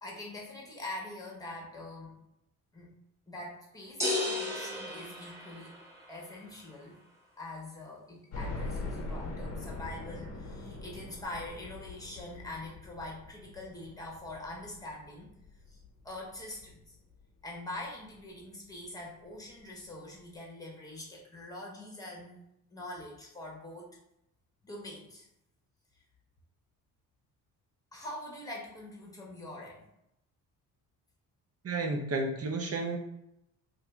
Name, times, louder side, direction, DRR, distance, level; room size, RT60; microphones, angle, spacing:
voice 1, 0.0-2.2 2.7-2.9 3.3-5.8 6.1-7.0 7.4-15.3 15.7-15.8 16.0-17.0 17.4-22.4 22.7-23.9 24.6-25.3 27.9-29.8, left 1 dB, 10° left, -2 dB, 1.2 m, -44 dB
sound 1, 4.0-6.0, left 2 dB, 5° right, 0.9 m, -34 dB
sound 2, 8.3-17.2 17.7-17.8 18.2-18.3 19.5-19.6 19.8-19.9, left 2 dB, 40° left, 0.8 m, -42 dB
voice 2, 31.6-33.0, right 3 dB, 40° right, 2 dB, 0.8 m, -32 dB
2.7 x 2.6 x 3.5 m, 0.82 s
cardioid pair, 80°, 39 cm